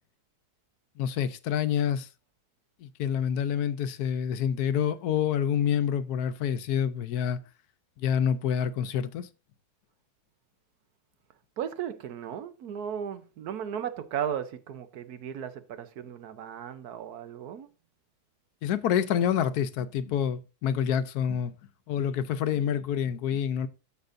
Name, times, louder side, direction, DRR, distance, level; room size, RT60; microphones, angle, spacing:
voice 1, 1.0-2.1 2.8-7.4 8.0-9.3 18.6-21.5 21.9-23.7, left 8 dB, 80° left, 1.2 m, -27 dB
voice 2, 11.6-17.7, right 9 dB, 80° right, 1.3 m, -36 dB
14.5 x 5.4 x 2.6 m
omnidirectional pair, 1.6 m